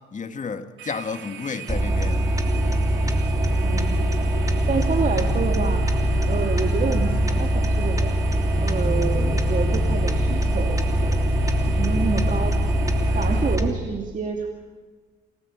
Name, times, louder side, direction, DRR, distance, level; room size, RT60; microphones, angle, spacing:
voice 1, 0.1-2.3, left 5 dB, 40° left, 2.0 m, -31 dB
sound 1, 0.8-13.6, right 9 dB, 70° right, 2.9 m, -41 dB
sound 2, 1.7-13.7, right 1 dB, 15° right, 3.1 m, -22 dB
sound 3, 2.3-13.4, left 5 dB, 70° left, 3.1 m, -35 dB
voice 2, 3.6-4.0 4.7-5.8 6.2-8.1 8.6-11.2 11.7-12.5 13.0-14.5, right 5 dB, 40° right, 2.8 m, -28 dB
28.0 x 19.5 x 9.0 m
cardioid pair, 90°, 20 cm